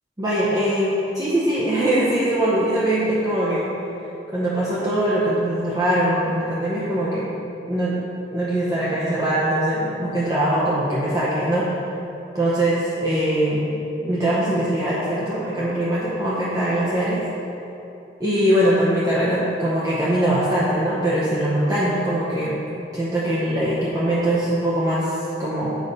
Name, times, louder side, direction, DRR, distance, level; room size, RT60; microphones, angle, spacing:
voice 1, 0.2-3.7 4.3-7.3 7.7-8.0 8.3-11.8 12.3-13.7 14.0-17.2 18.2-22.6 22.9-25.8, right 1 dB, 20° right, -8 dB, 0.7 m, -22 dB
7.1 x 5.1 x 4.0 m, 2.9 s
head